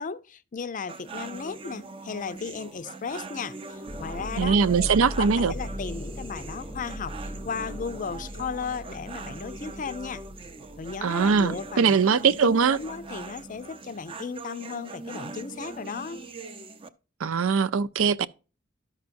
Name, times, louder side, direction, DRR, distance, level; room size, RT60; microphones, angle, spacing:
voice 1, 0.0-10.3 10.8-16.2, left 5 dB, 40° left, 0.5 m, -36 dB
sound 1, 0.9-16.9, right 3 dB, 25° right, 0.5 m, -41 dB
sound 2, 3.8-13.6, equal, 10° left, 0.7 m, -39 dB
voice 2, 4.4-5.5 11.0-12.8 17.2-18.3, right 5 dB, 90° right, 0.5 m, -21 dB
12.5 x 5.7 x 2.5 m
head